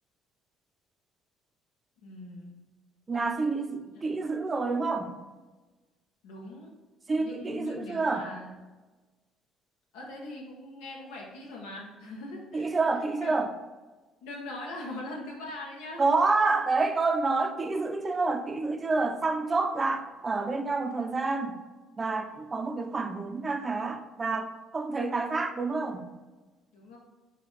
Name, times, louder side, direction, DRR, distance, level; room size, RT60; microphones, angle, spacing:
voice 1, 2.0-2.6 3.8-4.1 6.2-6.7 7.2-8.5 9.9-12.7 13.2-13.4 14.2-16.0 26.7-27.0, left 2 dB, 90° left, -1 dB, 1.0 m, -41 dB
voice 2, 3.1-5.1 7.1-8.3 12.5-13.5 16.0-21.6 22.0-26.1, right 3 dB, 30° right, 6 dB, 0.5 m, -28 dB
4.1 x 2.4 x 4.0 m, 1.2 s
supercardioid pair, 80°, 0 cm